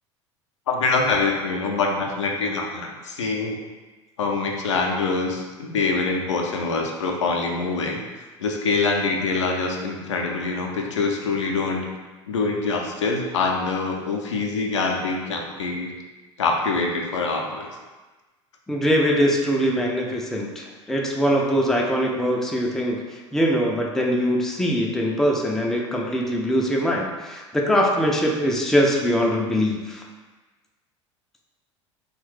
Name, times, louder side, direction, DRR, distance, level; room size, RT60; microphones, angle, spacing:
voice 1, 0.7-3.6 4.2-8.0 8.4-11.9 12.3-15.9 16.4-17.7, left 3 dB, 70° left, 1 dB, 0.4 m, -24 dB
voice 2, 18.7-30.0, equal, 5° left, -1 dB, 0.3 m, -22 dB
3.0 x 2.1 x 3.1 m, 1.3 s
figure-of-eight pair, 75°, 16 cm